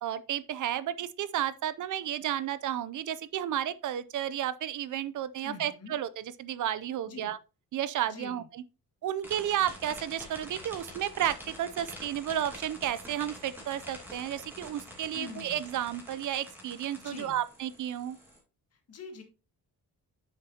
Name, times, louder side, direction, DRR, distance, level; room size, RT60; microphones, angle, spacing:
voice 1, 0.0-7.4 7.7-8.6 9.0-18.2, right 11 dB, 55° right, 0.4 m, -32 dB
voice 2, 5.4-5.9 7.1-7.3 8.1-8.5 15.1-15.6 17.0-17.4 18.7-19.2, left 5 dB, 40° left, 1.6 m, -44 dB
sound 1, 9.2-18.4, equal, 5° right, 2.4 m, -47 dB
8.9 x 6.6 x 2.8 m
cardioid pair, 170°, 36 cm